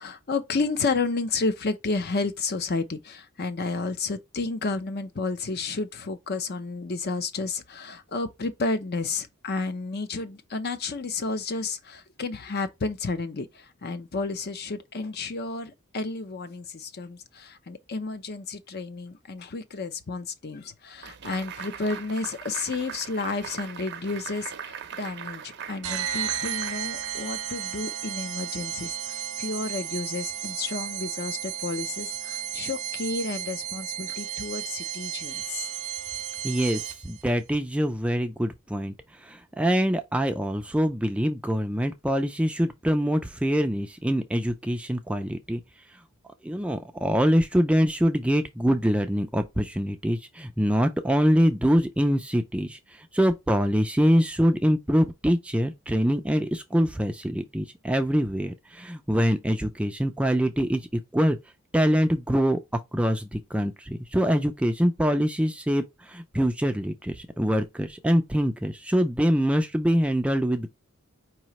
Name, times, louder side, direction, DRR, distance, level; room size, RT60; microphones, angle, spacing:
voice 1, 0.0-35.7, left 3 dB, 45° left, 0.6 m, -31 dB
sound 1, 21.0-27.5, right 8 dB, 50° right, 0.6 m, -40 dB
sound 2, 25.8-37.2, right 11 dB, 90° right, 0.6 m, -33 dB
voice 2, 36.4-45.6 45.9-46.0 46.4-61.4 61.7-70.7, equal, 5° right, 0.4 m, -24 dB
4.8 x 3.1 x 2.9 m
head